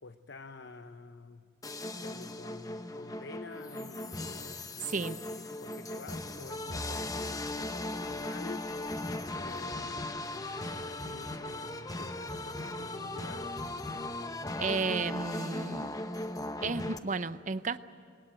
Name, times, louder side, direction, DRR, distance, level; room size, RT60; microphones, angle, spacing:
voice 1, 0.0-1.5 2.0-13.7, left 3 dB, 60° left, 8 dB, 0.8 m, -49 dB
sound 1, 1.6-17.0, left 2 dB, 15° left, 0.8 m, -38 dB
voice 2, 4.8-5.2 14.6-15.9 16.6-17.8, right 4 dB, 40° right, 13 dB, 0.7 m, -33 dB
22.0 x 19.5 x 9.1 m, 2.5 s
head